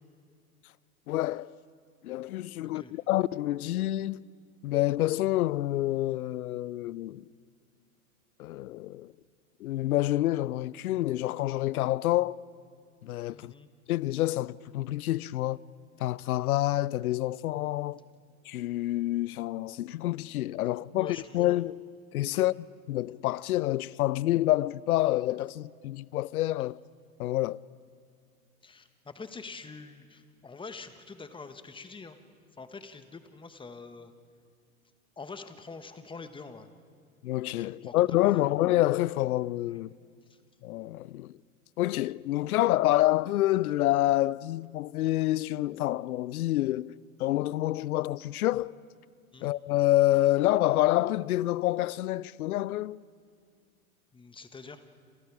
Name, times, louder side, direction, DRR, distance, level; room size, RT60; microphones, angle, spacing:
voice 1, 1.1-1.5 2.0-4.2 4.6-7.2 8.4-9.1 9.6-12.3 13.0-13.5 13.9-15.6 16.0-18.0 18.5-21.9 22.1-22.5 22.9-26.8 27.2-27.6 37.2-39.9 40.6-41.3 41.8-46.9 47.2-48.7 49.4-53.0, left 15 dB, 70° left, 0.6 m, -27 dB
voice 2, 2.6-2.9 13.3-13.7 20.9-21.6 22.3-22.5 28.6-32.2 32.6-34.1 35.2-36.7 37.8-38.4 49.3-49.5 54.1-54.8, left 4 dB, 10° left, 1.4 m, -45 dB
28.5 x 28.0 x 4.9 m
hypercardioid pair, 105°, 45 cm